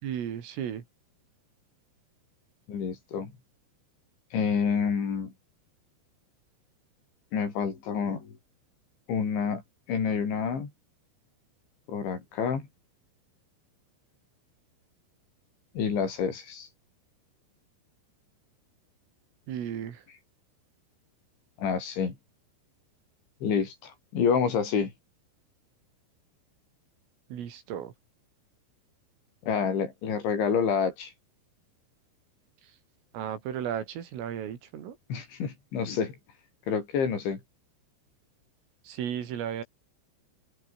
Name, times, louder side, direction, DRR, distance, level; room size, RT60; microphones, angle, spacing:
voice 1, 0.0-0.8 19.5-20.0 27.3-27.9 33.1-35.0 38.9-39.6, right 9 dB, 85° right, 5.9 m, -34 dB
voice 2, 2.7-3.3 4.3-5.3 7.3-8.4 9.1-9.6 9.9-10.7 11.9-12.7 15.8-16.7 21.6-22.2 23.4-24.9 29.4-31.1 35.1-36.2 36.7-37.4, left 6 dB, 65° left, 7.5 m, -28 dB
omnidirectional pair, 5.7 m